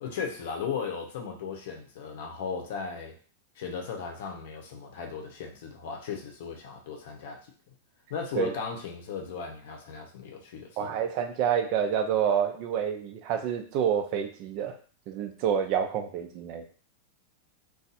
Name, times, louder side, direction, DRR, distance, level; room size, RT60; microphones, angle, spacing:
voice 1, 0.0-3.1 3.6-7.4 8.1-10.9, left 6 dB, 60° left, 2 dB, 0.8 m, -36 dB
voice 2, 10.8-14.7 15.1-16.7, right 8 dB, 35° right, 5 dB, 0.5 m, -28 dB
2.5 x 2.3 x 4.0 m, 0.41 s
supercardioid pair, 165°, 0 cm